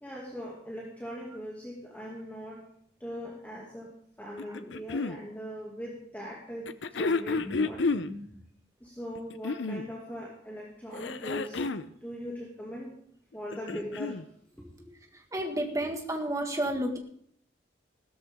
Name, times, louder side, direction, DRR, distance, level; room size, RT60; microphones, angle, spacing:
voice 1, 0.0-2.6 3.0-8.3 8.8-12.9 13.3-14.2 14.6-14.9 15.7-15.9 16.7-16.8, equal, 10° left, -4 dB, 2.3 m, -40 dB
sound 1, 4.4-5.2 6.7-8.1 9.1-9.9 10.9-11.9 13.3-14.2 15.4-15.5, left 3 dB, 85° left, 0.6 m, -31 dB
voice 2, 15.3-17.0, right 1 dB, 20° right, 3 dB, 1.7 m, -31 dB
15.5 x 13.0 x 3.6 m, 0.65 s
head